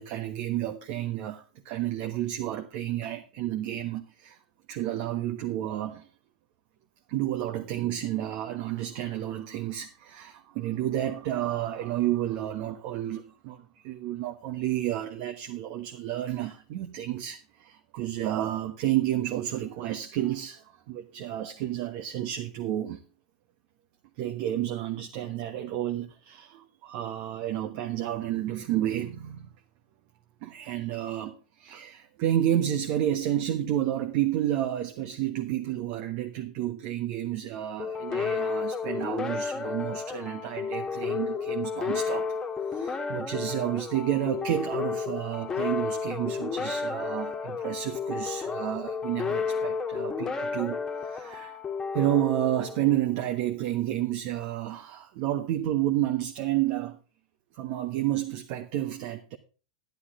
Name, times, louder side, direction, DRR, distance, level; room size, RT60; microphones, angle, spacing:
voice 1, 0.0-4.4 4.7-6.1 7.1-23.0 24.2-29.5 30.4-42.4 42.7-51.6 51.9-57.0 57.6-59.4, right 12 dB, 50° right, 1.3 m, -30 dB
sound 1, 37.8-53.2, left 5 dB, 15° left, 1.9 m, -32 dB
12.0 x 11.0 x 3.8 m
hypercardioid pair, 110°, 4 cm